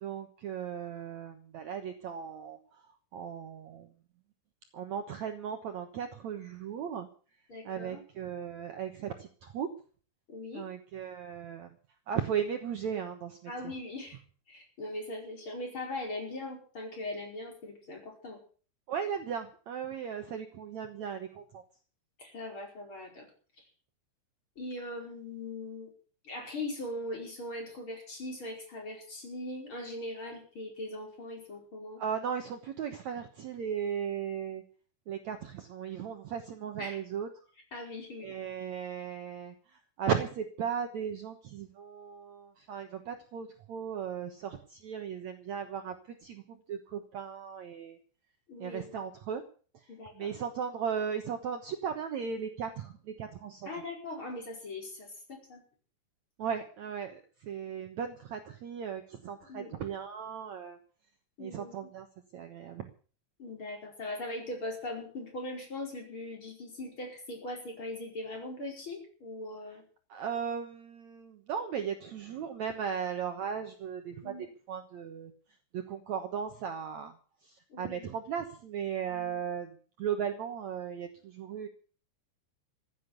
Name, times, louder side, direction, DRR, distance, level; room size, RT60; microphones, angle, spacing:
voice 1, 0.0-2.8 3.1-3.9 4.7-7.1 7.6-9.7 10.5-11.7 12.1-13.5 18.9-21.6 32.0-34.6 35.1-37.3 38.2-48.0 48.6-49.4 50.1-53.7 56.4-60.8 61.4-62.1 62.3-62.9 70.1-75.3 75.7-77.1 77.4-81.7, right 7 dB, 80° right, 6 dB, 1.6 m, -36 dB
voice 2, 7.5-8.0 10.3-10.7 13.5-14.2 14.5-18.4 22.2-23.3 24.6-25.9 26.2-32.0 36.8-37.0 37.7-38.3 48.5-48.8 49.9-50.4 53.7-55.6 59.5-59.7 61.4-61.8 63.4-69.8 74.2-74.5 77.7-78.0 79.1-79.4, left 1 dB, 30° left, 1 dB, 5.5 m, -40 dB
15.5 x 9.9 x 8.2 m, 0.42 s
omnidirectional pair, 5.2 m